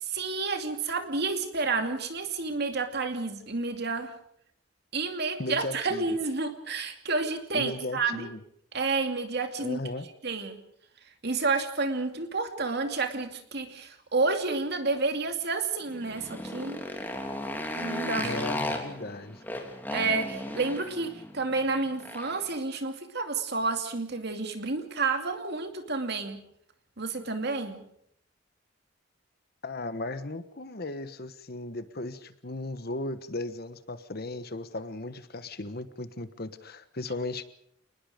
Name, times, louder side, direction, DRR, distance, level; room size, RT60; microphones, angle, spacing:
voice 1, 0.1-4.1 4.9-8.3 8.7-9.8 10.2-10.6 11.2-16.8 17.7-18.3 19.9-26.4 27.0-27.8, right 3 dB, 55° right, 6 dB, 2.6 m, -30 dB
voice 2, 5.4-6.2 7.5-8.4 9.6-10.1 18.2-19.4 29.6-37.4, left 2 dB, 50° left, 12 dB, 1.3 m, -36 dB
Motorcycle, 15.9-22.5, left 1 dB, 10° left, 2.9 m, -36 dB
28.5 x 20.0 x 5.1 m, 0.69 s
head